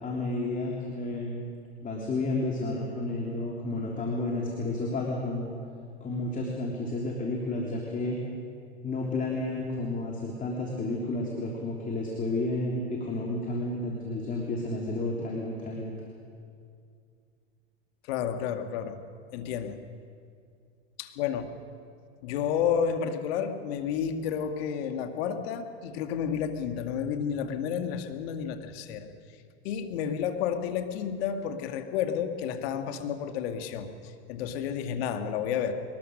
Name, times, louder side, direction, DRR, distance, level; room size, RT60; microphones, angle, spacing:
voice 1, 0.0-1.4 1.8-5.5 6.0-8.2 8.8-15.9, left 2 dB, 25° left, -1 dB, 3.3 m, -31 dB
voice 2, 18.0-19.0 19.3-19.8 21.0-21.5 22.2-29.1 29.6-35.8, left 8 dB, 65° left, 7 dB, 2.0 m, -31 dB
22.0 x 20.0 x 6.5 m, 2.3 s
hypercardioid pair, 110°, 33 cm